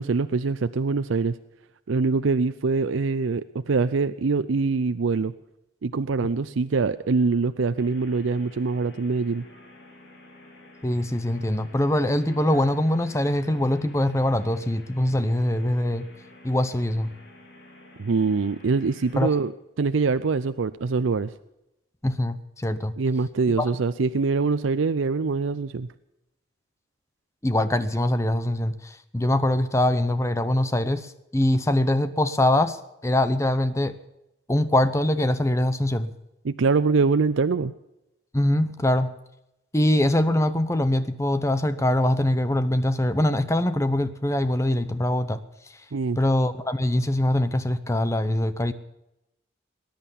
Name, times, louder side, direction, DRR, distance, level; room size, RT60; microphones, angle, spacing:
voice 1, 0.0-1.3 1.9-5.3 5.8-9.4 18.0-19.5 19.8-21.3 23.0-25.9 36.4-37.7 45.9-46.2, right 4 dB, 90° right, 12 dB, 0.5 m, -24 dB
sound 1, 7.8-19.4, left 1 dB, 65° left, 3.7 m, -50 dB
voice 2, 10.8-16.1 16.4-17.1 19.2-19.3 22.0-22.9 23.6-23.7 27.4-32.8 33.0-33.9 34.5-36.1 38.3-39.1 39.7-45.4 46.2-48.7, left 1 dB, 15° left, 12 dB, 0.8 m, -23 dB
20.0 x 10.5 x 7.1 m, 0.89 s
head